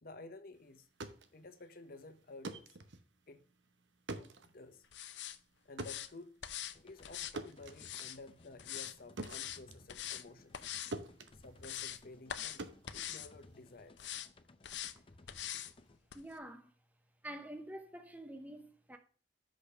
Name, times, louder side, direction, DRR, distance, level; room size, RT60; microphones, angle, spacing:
voice 1, 0.0-0.9 1.3-2.7 3.3-3.4 4.1-4.8 5.6-6.4 6.8-10.6 11.3-12.6 12.9-14.0, left 2 dB, 55° left, 1.0 m, -53 dB
sound 1, 0.8-10.7 10.9-13.9, right 2 dB, 90° right, 0.9 m, -48 dB
sound 2, 4.9-5.4 5.8-6.1 6.4-6.8 7.0-8.2 8.6-8.9 9.2-9.6 9.9-10.2 10.5-10.9 11.3-12.0 12.3-12.6 12.9-13.3 14.0-14.3 14.6-14.9 15.3-15.7 16.1-16.2, left 11 dB, 75° left, 0.6 m, -43 dB
sound 3, 6.7-16.0, left 2 dB, 30° left, 0.6 m, -61 dB
voice 2, 16.1-16.7 17.2-19.0, right 1 dB, 10° right, 0.7 m, -47 dB
6.4 x 5.2 x 5.6 m
head